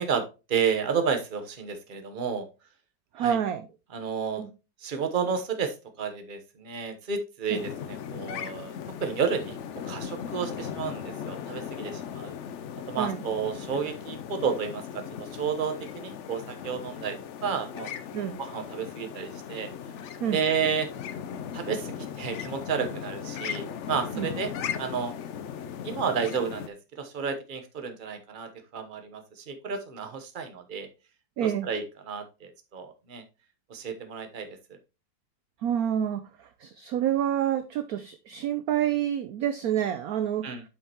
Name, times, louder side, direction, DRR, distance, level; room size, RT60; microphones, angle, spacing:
voice 1, 0.0-2.5 3.2-3.4 3.9-4.4 4.8-9.6 9.8-12.3 12.9-17.9 18.4-19.7 20.3-20.9 21.5-24.5 24.8-25.1 25.8-30.9 31.4-33.2 33.7-34.8 40.4-40.6, right 6 dB, 35° right, 1.0 m, -31 dB
voice 2, 3.1-3.7 4.4-4.5 7.5-7.6 13.0-13.2 18.1-18.4 20.2-20.4 24.2-24.3 31.4-31.7 35.6-40.5, right 10 dB, 65° right, 0.9 m, -28 dB
sound 1, 7.6-26.7, left 8 dB, 90° left, 0.6 m, -38 dB
8.6 x 5.5 x 3.0 m
omnidirectional pair, 2.0 m